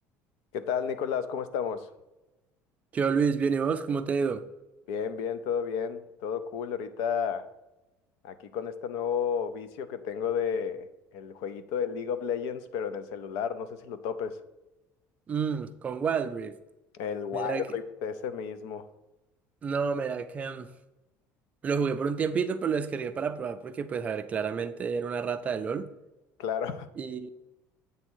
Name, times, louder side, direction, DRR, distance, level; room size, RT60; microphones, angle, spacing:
voice 1, 0.5-1.9 4.9-7.5 8.2-10.8 11.1-14.4 16.9-18.9 26.4-26.9, left 7 dB, 75° left, 0.6 m, -32 dB
voice 2, 2.9-4.5 15.3-16.6 17.3-17.6 19.6-20.7 21.6-25.9 27.0-27.3, right 6 dB, 25° right, 0.4 m, -29 dB
8.3 x 3.6 x 6.2 m
cardioid pair, 170°, 6 cm